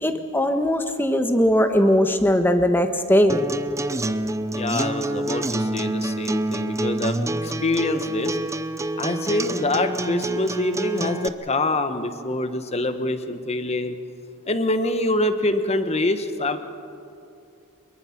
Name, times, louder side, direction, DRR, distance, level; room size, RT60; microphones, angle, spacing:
voice 1, 0.0-3.4, equal, 10° left, 7 dB, 1.2 m, -19 dB
Acoustic guitar, 3.3-11.3, right 2 dB, 15° right, 0.6 m, -27 dB
voice 2, 4.5-8.4 9.0-14.0 14.5-16.6, left 2 dB, 30° left, 9 dB, 1.1 m, -25 dB
24.0 x 22.5 x 5.9 m, 2.6 s
head